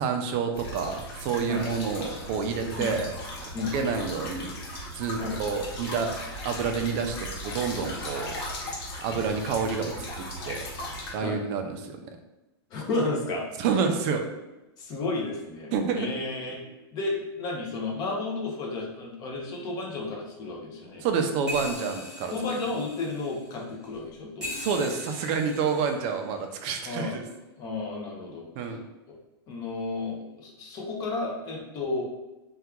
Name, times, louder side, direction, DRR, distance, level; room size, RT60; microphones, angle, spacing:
voice 1, 0.0-3.1 3.4-4.6 4.9-6.1 6.4-8.3 9.0-10.6 11.1-12.0 13.6-14.2 15.7-16.1 21.0-22.3 24.6-27.2 28.6-28.8, right 5 dB, 35° right, 5 dB, 0.4 m, -28 dB
sound 1, 0.5-11.1, left 1 dB, 60° left, 1.2 m, -37 dB
voice 2, 12.7-13.4 14.8-16.6 16.9-21.0 22.3-24.5 26.8-27.2 27.6-28.5 29.1-29.2 29.5-32.0, left 3 dB, 30° left, 0 dB, 0.7 m, -32 dB
sound 2, 16.7-16.8 17.2-17.3 17.6-17.7 21.5-24.0 24.4-26.4 27.3-27.4, left 1 dB, 5° right, 1.4 m, -40 dB
2.8 x 2.3 x 3.6 m, 1.0 s
supercardioid pair, 155°, 14 cm